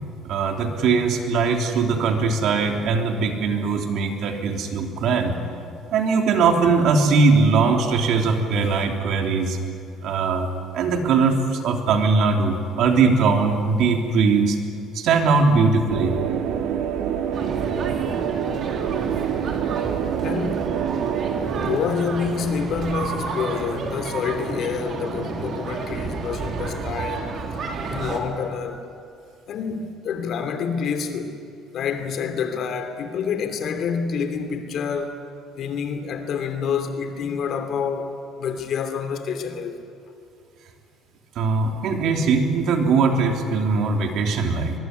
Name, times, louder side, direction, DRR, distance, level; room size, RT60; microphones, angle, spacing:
voice 1, 0.2-5.3 5.9-9.6 10.0-10.5 10.7-14.6 14.9-16.1 41.3-44.7, right 4 dB, 65° right, 3.4 m, -20 dB
sound 1, 15.9-21.8, right 8 dB, 80° right, 2.2 m, -26 dB
sound 2, 17.3-28.2, right 4 dB, 50° right, 3.5 m, -31 dB
voice 2, 20.2-20.8 21.5-27.2 27.9-28.8 29.5-31.4 31.7-35.2 35.6-39.8, left 6 dB, 55° left, 2.9 m, -27 dB
23.5 x 22.5 x 9.7 m
cardioid pair, 125°, 0 cm